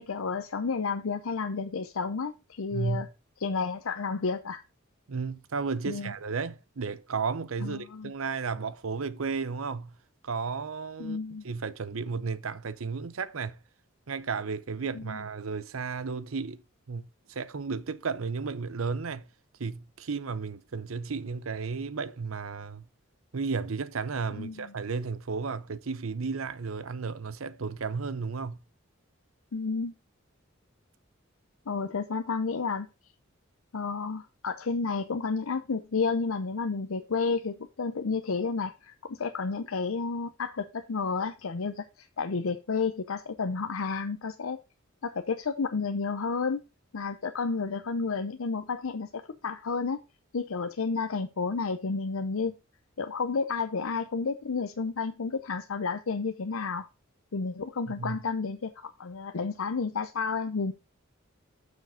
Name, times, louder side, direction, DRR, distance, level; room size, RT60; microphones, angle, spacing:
voice 1, 0.0-3.1 3.4-4.6 5.9-6.1 7.6-8.1 11.0-11.4 14.9-15.2 24.3-24.7 29.5-29.9 31.7-32.9 33.7-44.6 45.0-46.6 46.9-50.0 50.3-52.5 53.0-56.9 57.3-60.7, left 4 dB, 90° left, 0.7 m, -31 dB
voice 2, 2.7-3.0 5.1-10.0 10.2-11.2 11.4-13.6 14.1-16.6 16.9-17.0 17.3-19.3 19.6-22.9 23.3-28.6 57.9-58.2, right 5 dB, 85° right, 0.7 m, -33 dB
7.4 x 6.4 x 5.0 m
head